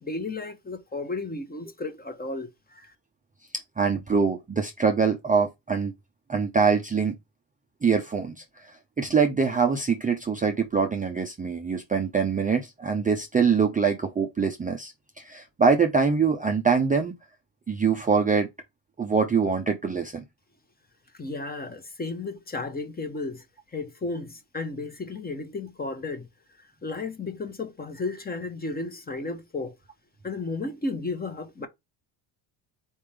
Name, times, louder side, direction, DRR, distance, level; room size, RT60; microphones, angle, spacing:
voice 1, 0.0-2.9 21.2-23.4 23.7-26.3 26.8-29.7 30.2-31.7, left 3 dB, 20° left, 0.9 m, -33 dB
voice 2, 3.8-5.9 6.3-7.1 7.8-17.1 17.7-18.5 19.0-20.2, right 5 dB, 15° right, 0.5 m, -24 dB
4.4 x 3.4 x 3.3 m
cardioid pair, 115°, 49 cm